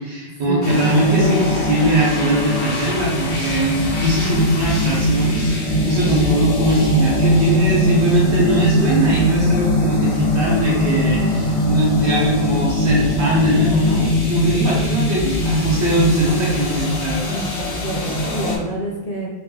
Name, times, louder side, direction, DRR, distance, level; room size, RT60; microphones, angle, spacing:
voice 1, 0.0-17.4, right 1 dB, 80° right, -5 dB, 1.6 m, -20 dB
sound 1, 0.6-18.6, left 1 dB, 80° left, 1.1 m, -20 dB
voice 2, 17.2-19.3, equal, 40° left, -3 dB, 0.8 m, -28 dB
3.5 x 3.0 x 3.9 m, 1.1 s
omnidirectional pair, 1.1 m